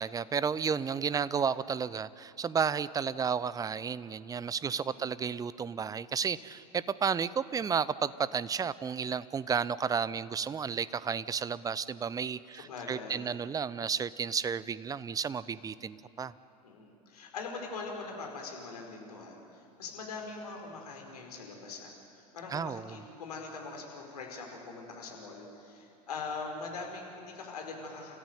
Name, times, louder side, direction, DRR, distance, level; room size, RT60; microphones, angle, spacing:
voice 1, 0.0-16.3 22.5-23.0, right 6 dB, 15° right, 18 dB, 0.6 m, -32 dB
voice 2, 4.7-5.1 12.5-13.3 16.6-21.9 22.3-28.2, left 4 dB, 70° left, 2 dB, 4.7 m, -42 dB
30.0 x 14.5 x 9.4 m, 2.6 s
figure-of-eight pair, 85°, 20 cm